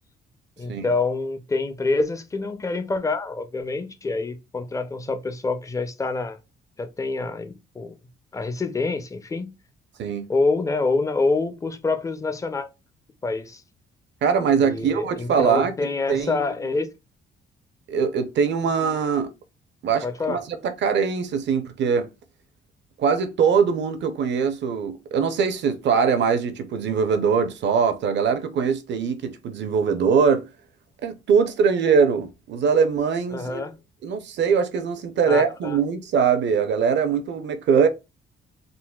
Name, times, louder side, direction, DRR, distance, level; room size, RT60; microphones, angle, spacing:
voice 1, 0.6-6.4 6.8-7.9 8.3-9.5 10.3-12.7 13.2-13.6 14.6-16.9 20.0-20.4 33.3-33.8 35.3-35.8, left 3 dB, 15° left, 0.4 m, -26 dB
voice 2, 14.2-15.7 16.1-16.4 17.9-19.3 19.8-20.4 20.8-22.1 23.0-30.4 31.0-33.6 34.0-37.9, right 6 dB, 65° right, 0.6 m, -22 dB
3.8 x 2.1 x 2.2 m
cardioid pair, 90°, 20 cm